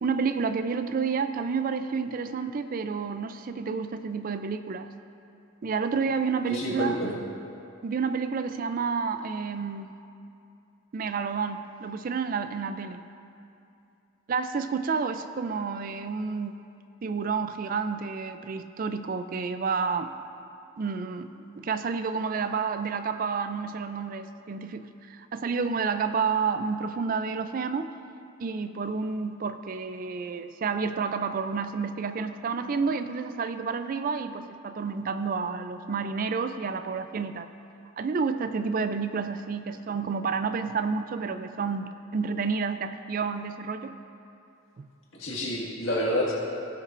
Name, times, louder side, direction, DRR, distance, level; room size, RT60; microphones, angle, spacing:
voice 1, 0.0-4.9 5.6-7.0 7.8-9.9 10.9-13.0 14.3-16.6 17.0-20.1 20.8-21.3 21.5-27.9 28.4-37.5 38.0-44.0 44.8-44.9, right 5 dB, 45° right, 10 dB, 0.4 m, -30 dB
voice 2, 6.5-7.1 45.2-46.3, equal, 70° left, -4 dB, 1.8 m, -28 dB
17.5 x 6.4 x 2.5 m, 2.6 s
head